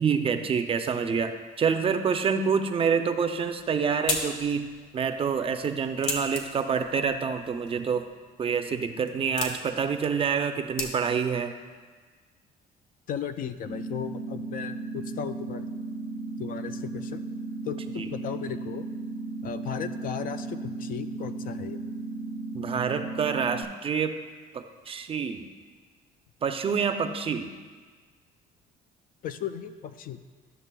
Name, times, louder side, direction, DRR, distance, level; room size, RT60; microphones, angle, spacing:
voice 1, 0.0-8.1 8.4-11.5 18.0-18.1 22.5-24.2 24.5-25.5 26.4-27.5, right 6 dB, 35° right, 7 dB, 0.5 m, -27 dB
sound 1, 3.4-11.4, left 3 dB, 85° left, 1.1 m, -38 dB
voice 2, 13.1-15.7 16.4-17.2 17.6-18.8 19.4-21.8 29.2-30.2, left 9 dB, 55° left, 10 dB, 0.4 m, -36 dB
sound 2, 13.6-23.6, right 2 dB, 20° left, 0.7 m, -35 dB
12.5 x 6.6 x 2.3 m, 1.5 s
cardioid pair, 110°, 17 cm